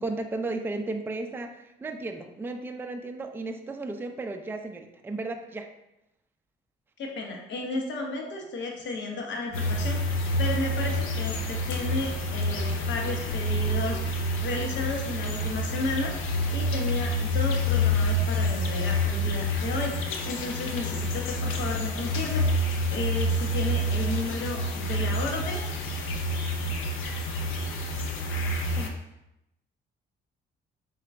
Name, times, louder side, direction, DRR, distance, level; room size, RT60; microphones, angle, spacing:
voice 1, 0.0-5.7 28.8-29.0, right 2 dB, 10° right, 5 dB, 0.3 m, -34 dB
voice 2, 7.0-10.1 10.4-14.0 14.4-16.1 16.5-20.0 20.2-22.6 22.9-25.7, left 3 dB, 65° left, 1 dB, 0.9 m, -33 dB
sound 1, 9.5-28.9, equal, 85° left, 0.5 m, -28 dB
3.8 x 3.2 x 3.3 m, 0.87 s
cardioid pair, 90°, 20 cm